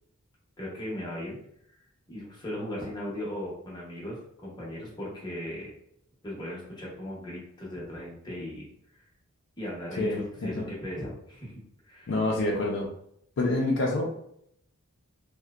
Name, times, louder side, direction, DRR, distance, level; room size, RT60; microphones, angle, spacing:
voice 1, 0.6-1.4 2.1-5.7 6.2-8.7 9.6-11.5 11.8-12.1, left 1 dB, 20° left, -5 dB, 0.7 m, -37 dB
voice 2, 10.0-10.5 12.1-12.9 13.4-14.2, left 2 dB, 60° left, -1 dB, 0.4 m, -27 dB
2.6 x 2.1 x 2.3 m, 0.70 s
head